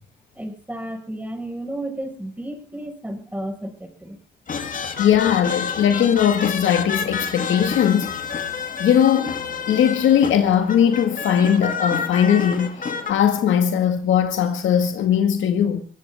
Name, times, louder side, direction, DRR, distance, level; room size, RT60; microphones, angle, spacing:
voice 1, 0.3-4.2, right 1 dB, 10° right, 5.3 m, -32 dB
gralles el gegant del pi, 4.5-13.1, left 6 dB, 45° left, 2.4 m, -29 dB
voice 2, 5.0-8.1 8.8-9.4 9.7-15.8, left 9 dB, 75° left, 1.9 m, -19 dB
22.5 x 17.0 x 3.6 m
cardioid pair, 90°, 20 cm